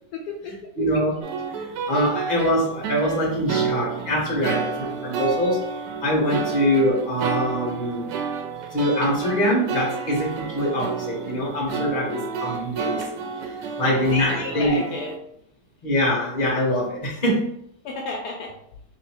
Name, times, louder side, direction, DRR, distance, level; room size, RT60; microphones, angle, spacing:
voice 1, 0.1-0.7 13.9-15.2 17.8-18.6, left 3 dB, 70° left, 0 dB, 1.1 m, -31 dB
voice 2, 0.8-1.2 1.5-5.6 6.0-8.1 8.7-13.3 13.8-14.8 15.8-17.4, equal, 35° left, -3 dB, 1.2 m, -23 dB
sound 1, 1.2-15.2, right 5 dB, 80° right, 1.3 m, -30 dB
3.1 x 2.9 x 4.4 m, 0.73 s
omnidirectional pair, 1.8 m